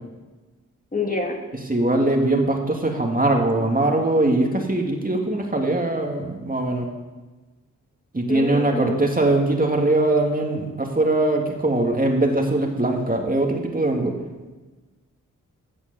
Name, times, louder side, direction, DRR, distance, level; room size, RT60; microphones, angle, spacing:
voice 1, 0.9-1.4 8.3-9.0, left 3 dB, 25° left, 1 dB, 2.5 m, -27 dB
voice 2, 1.7-6.9 8.1-14.2, right 2 dB, 25° right, 1 dB, 2.4 m, -21 dB
15.0 x 7.1 x 7.0 m, 1.2 s
cardioid pair, 50°, 32 cm